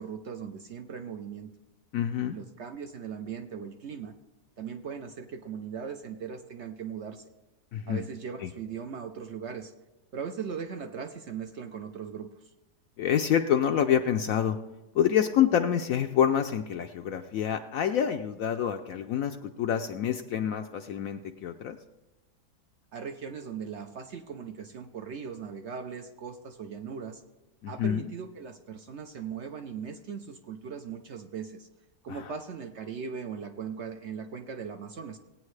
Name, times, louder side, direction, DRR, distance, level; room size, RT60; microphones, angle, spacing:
voice 1, 0.0-1.5 2.3-4.1 4.6-7.3 7.9-9.7 10.1-12.3 22.9-27.2 27.7-31.7 32.0-35.2, right 6 dB, 60° right, 6 dB, 0.7 m, -39 dB
voice 2, 1.9-2.4 7.7-8.0 8.4-8.5 13.0-14.6 14.9-21.8 27.6-28.1 32.1-32.3, left 9 dB, 70° left, 6 dB, 0.9 m, -27 dB
18.0 x 9.0 x 3.2 m, 1.0 s
omnidirectional pair, 1.7 m